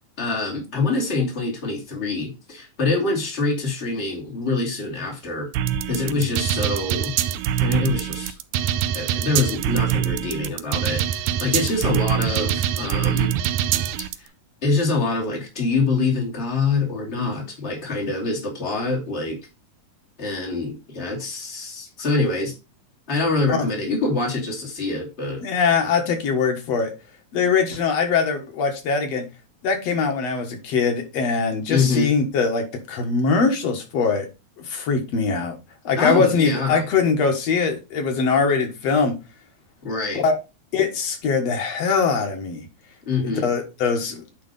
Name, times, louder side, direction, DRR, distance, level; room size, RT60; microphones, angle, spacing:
voice 1, 0.2-5.5 5.9-7.1 7.6-8.4 8.9-13.4 14.6-19.4 20.2-22.5 23.1-25.4 31.7-32.1 36.0-36.8 39.8-40.2 43.0-43.5, left 3 dB, 20° left, -1 dB, 2.6 m, -25 dB
sound 1, 5.5-14.1, right 10 dB, 85° right, 2.1 m, -24 dB
voice 2, 25.4-26.9 27.3-29.2 29.6-34.3 34.6-35.6 35.8-39.1 40.1-40.4 40.7-42.6 43.3-44.2, left 5 dB, 60° left, 4 dB, 2.5 m, -22 dB
9.5 x 3.9 x 5.3 m, 0.28 s
omnidirectional pair, 3.5 m